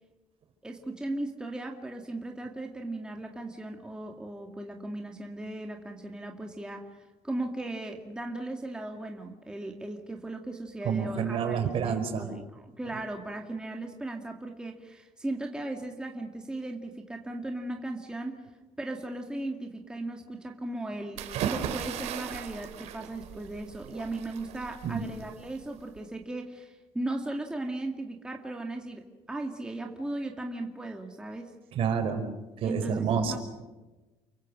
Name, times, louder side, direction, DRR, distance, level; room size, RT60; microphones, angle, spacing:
voice 1, 0.6-18.5 18.8-31.5 32.6-33.4, right 2 dB, 5° right, 2 dB, 2.2 m, -37 dB
voice 2, 10.8-12.3 24.8-25.0 31.7-32.2 32.6-33.4, right 7 dB, 55° right, 6 dB, 5.1 m, -28 dB
sound 1, 21.2-26.0, right 9 dB, 75° right, 3.2 m, -37 dB
29.5 x 24.0 x 6.5 m, 1.1 s
cardioid pair, 145°, 11 cm